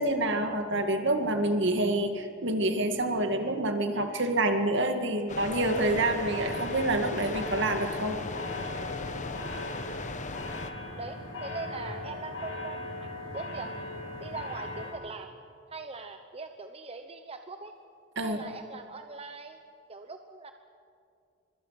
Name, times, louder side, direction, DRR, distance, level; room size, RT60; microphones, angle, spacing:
voice 1, 0.0-8.2 18.2-18.4, right 1 dB, 65° right, 6 dB, 2.2 m, -27 dB
sound 1, 5.3-10.7, left 3 dB, 40° left, 1.1 m, -37 dB
sound 2, 5.6-14.9, left 2 dB, 70° left, 7.4 m, -39 dB
voice 2, 9.7-10.1 10.9-12.8 13.3-13.7 14.2-15.3 15.7-17.7 18.2-19.6 19.9-20.5, right 3 dB, 30° right, 6 dB, 1.0 m, -41 dB
25.0 x 24.0 x 6.0 m, 2.5 s
head